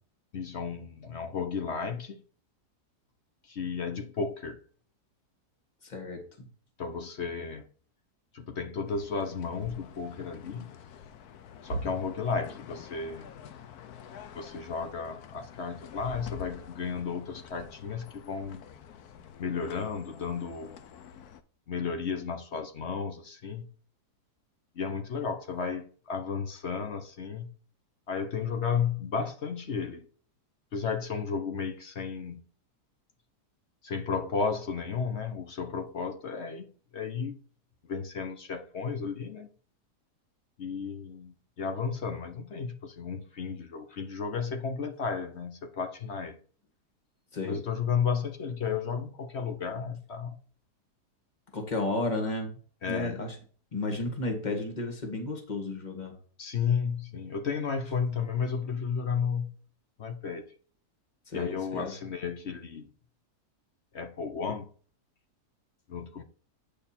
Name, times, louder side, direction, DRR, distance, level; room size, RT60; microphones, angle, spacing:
voice 1, 0.3-2.2 3.4-4.6 6.8-7.6 8.3-10.7 11.6-13.3 14.3-18.6 19.4-20.8 21.7-23.7 24.7-27.5 28.1-30.1 30.7-32.4 33.8-37.4 37.9-39.5 40.6-46.4 47.4-50.4 52.8-53.2 56.4-59.5 60.0-60.4 61.3-62.9 63.9-64.7 65.9-66.2, left 6 dB, 50° left, 1.1 m, -33 dB
voice 2, 5.8-6.5 47.3-47.6 51.5-52.6 52.9-53.4 53.7-56.2 61.3-61.9, left 2 dB, 25° left, 1.9 m, -33 dB
sound 1, 8.9-21.4, left 8 dB, 70° left, 1.3 m, -48 dB
9.0 x 5.4 x 4.3 m
omnidirectional pair, 1.7 m